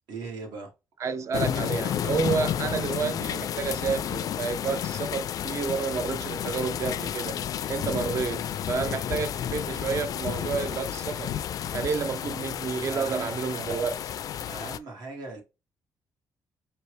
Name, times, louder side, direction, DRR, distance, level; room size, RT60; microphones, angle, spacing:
voice 1, 0.1-0.7 12.9-13.4 14.5-15.4, right 3 dB, 80° right, 2.2 m, -38 dB
voice 2, 1.0-7.4 7.7-11.3 11.7-14.1, right 5 dB, 45° right, 0.5 m, -30 dB
sound 1, 1.3-14.8, left 10 dB, 55° left, 0.3 m, -31 dB
4.3 x 2.8 x 3.2 m
cardioid pair, 140°, 7 cm